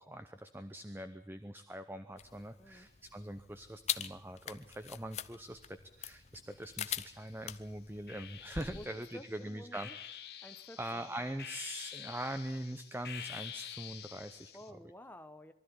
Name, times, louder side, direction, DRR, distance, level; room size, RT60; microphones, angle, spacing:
voice 1, 0.0-9.9 10.4-10.5 10.8-14.8, right 1 dB, 10° right, 9 dB, 0.8 m, -43 dB
sound 1, 2.2-8.9, left 9 dB, 40° left, 0.8 m, -43 dB
voice 2, 2.6-2.9 8.7-10.0 10.4-11.3 14.5-15.5, left 1 dB, 10° left, 8 dB, 1.0 m, -52 dB
sound 2, 6.7-7.4 8.1-14.7, left 9 dB, 60° left, 1.6 m, -48 dB
23.0 x 13.5 x 9.8 m, 0.76 s
head